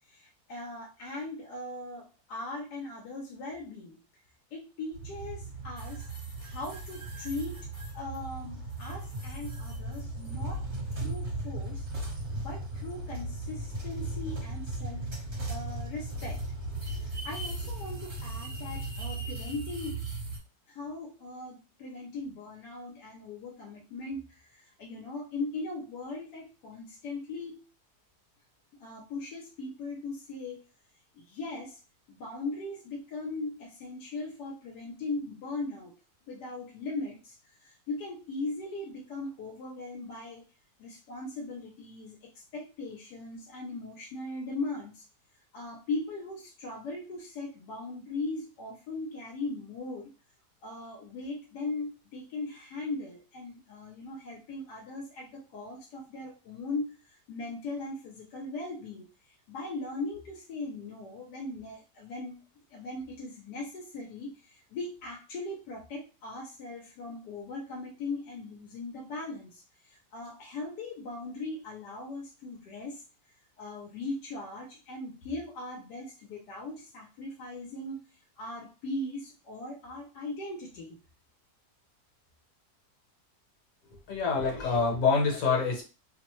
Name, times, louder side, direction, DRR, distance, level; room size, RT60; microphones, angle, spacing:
voice 1, 0.1-4.0 4.5-6.1 6.4-7.7 7.9-10.7 11.0-11.9 12.4-15.1 15.5-16.4 16.8-20.0 20.7-27.6 28.8-30.6 31.1-31.8 32.1-35.9 36.3-40.4 40.8-45.0 45.5-50.1 50.6-57.0 57.3-62.4 62.7-73.0 73.6-78.0 78.4-81.0 84.4-84.5, left 2 dB, 80° left, -1 dB, 1.2 m, -39 dB
sound 1, 4.9-20.4, right 2 dB, 45° right, 1.3 m, -37 dB
voice 2, 84.1-85.8, left 4 dB, 60° left, -1 dB, 1.3 m, -26 dB
3.0 x 2.1 x 2.9 m, 0.33 s
omnidirectional pair, 1.8 m